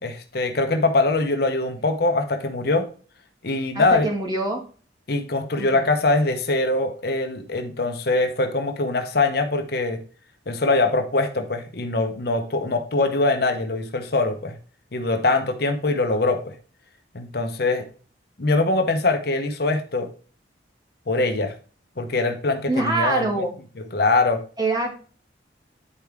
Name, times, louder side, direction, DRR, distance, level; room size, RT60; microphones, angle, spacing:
voice 1, 0.0-2.9 3.4-4.1 5.1-10.0 10.5-14.6 14.9-16.6 17.1-17.9 18.4-20.1 21.1-21.5 22.0-23.3 23.9-24.4, left 2 dB, 55° left, 6 dB, 0.9 m, -23 dB
voice 2, 3.7-4.6 5.6-5.9 22.7-23.5 24.6-24.9, right 2 dB, 20° right, 0 dB, 2.0 m, -24 dB
9.8 x 4.7 x 3.5 m, 0.39 s
head